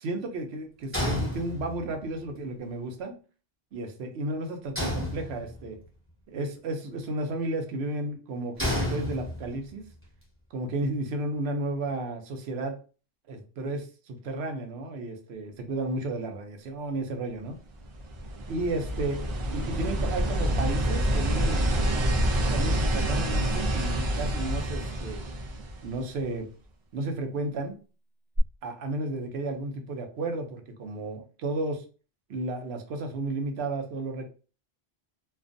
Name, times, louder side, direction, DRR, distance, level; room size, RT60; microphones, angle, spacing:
voice 1, 0.0-3.1 3.7-5.8 6.3-9.8 10.5-12.7 13.3-17.6 18.5-19.1 19.5-21.6 22.5-25.2 25.8-26.5 26.9-27.7 28.6-31.8 32.3-34.3, right 2 dB, 80° right, 5 dB, 0.8 m, -33 dB
sound 1, 0.9-2.0 4.8-5.8 8.6-9.7, left 1 dB, 15° right, 0.8 m, -31 dB
sound 2, 17.7-26.2 28.4-28.5, right 1 dB, 45° right, 0.4 m, -27 dB
2.4 x 2.2 x 2.5 m, 0.36 s
omnidirectional pair, 1.1 m